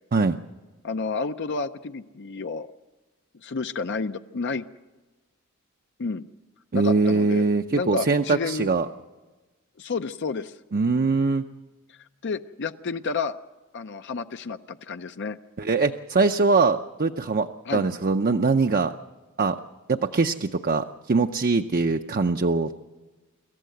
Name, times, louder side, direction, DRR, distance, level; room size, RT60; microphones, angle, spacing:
voice 1, 0.8-2.7 3.4-4.6 6.0-6.3 6.7-7.4 7.7-8.7 9.8-10.6 11.9-13.4 13.7-15.4 17.7-17.8, left 4 dB, 55° left, 9 dB, 0.6 m, -30 dB
voice 2, 6.7-8.9 10.7-11.4 15.6-18.9 19.4-19.6 19.9-22.8, right 4 dB, 45° right, 6 dB, 0.6 m, -22 dB
26.0 x 14.5 x 7.8 m, 1.2 s
head